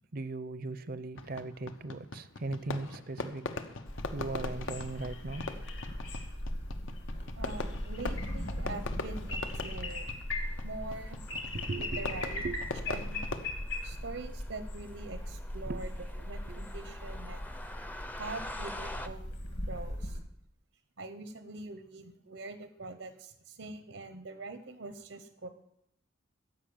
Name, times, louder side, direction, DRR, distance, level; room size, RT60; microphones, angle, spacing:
voice 1, 0.1-3.5 4.1-5.5 11.5-12.6 15.7-15.8 16.5-16.6, right 2 dB, 50° right, 0.6 m, -38 dB
Fireworks, 1.2-13.5, left 3 dB, 80° left, 1.0 m, -41 dB
sound 1, 3.9-20.2, left 1 dB, 65° left, 2.2 m, -38 dB
voice 2, 7.4-10.1 10.6-11.2 11.8-12.4 12.9-13.2 13.8-15.9 16.2-17.5 18.1-20.2 21.0-25.5, right 3 dB, 85° right, 1.0 m, -44 dB
sound 2, 10.4-19.1, left 1 dB, 10° left, 0.5 m, -47 dB
15.0 x 5.5 x 7.1 m
head